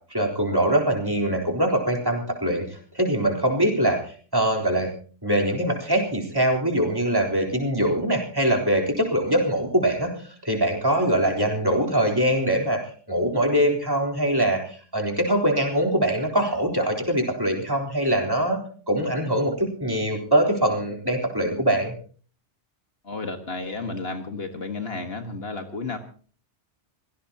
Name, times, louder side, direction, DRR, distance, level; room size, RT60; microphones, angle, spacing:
voice 1, 0.1-4.0 4.3-4.9 5.2-10.1 10.4-12.8 13.1-18.6 18.9-21.9, right 1 dB, 20° right, 1 dB, 3.9 m, -23 dB
voice 2, 23.0-26.0, left 3 dB, 60° left, 5 dB, 1.8 m, -32 dB
24.0 x 18.0 x 2.9 m, 0.43 s
omnidirectional pair, 1.2 m